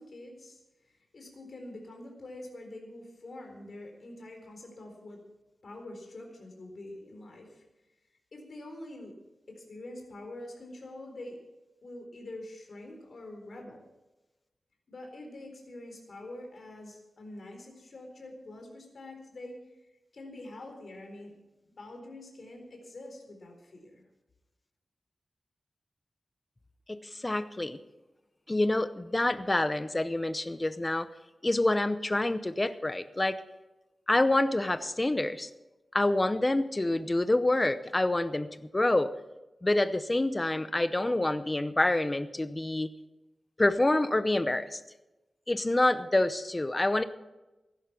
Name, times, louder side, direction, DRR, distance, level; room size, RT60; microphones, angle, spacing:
voice 1, 0.0-5.2 5.6-7.6 8.3-9.2 9.5-11.4 11.8-13.9 14.9-19.6 20.1-21.3 21.6-24.0, left 1 dB, 60° left, 2 dB, 4.1 m, -45 dB
voice 2, 26.9-27.8 28.5-31.1 31.4-33.4 34.1-35.5 35.9-39.1 39.6-42.9 43.6-44.8 45.5-47.0, left 2 dB, 20° left, 12 dB, 0.7 m, -27 dB
15.5 x 11.5 x 5.8 m, 1.0 s
wide cardioid pair, 115°, 0 cm